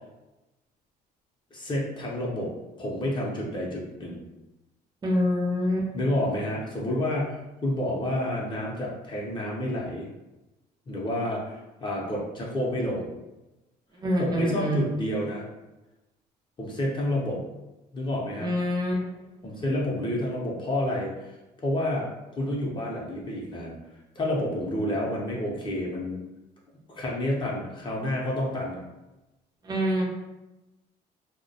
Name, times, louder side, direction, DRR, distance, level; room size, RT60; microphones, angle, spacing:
voice 1, 1.5-2.5 2.8-4.2 5.9-10.1 10.9-13.1 14.1-15.4 16.6-17.4 17.9-18.5 19.4-21.4 21.6-23.8 24.2-26.2 26.9-28.8, left 1 dB, 30° left, -3 dB, 0.6 m, -29 dB
voice 2, 5.0-5.9 14.0-14.8 18.4-19.1 29.6-30.0, equal, 25° right, -2 dB, 0.6 m, -25 dB
2.2 x 2.1 x 2.6 m, 1.0 s
cardioid pair, 110°, 17 cm